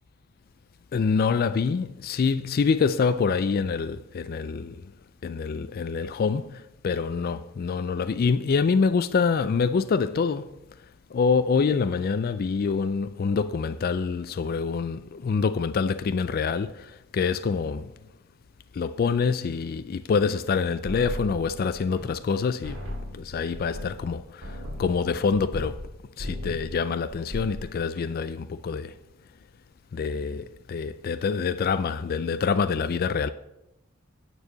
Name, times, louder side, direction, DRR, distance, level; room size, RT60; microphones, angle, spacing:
voice 1, 0.9-4.8 5.2-10.5 11.1-17.9 18.7-22.8 23.1-25.8 26.2-28.9 29.9-33.3, left 5 dB, 45° left, 0.3 m, -26 dB
sound 1, 20.8-22.4 22.6-25.9 26.2-26.8 27.1-27.7, left 1 dB, 65° right, 2.5 m, -37 dB
9.4 x 4.6 x 7.3 m
head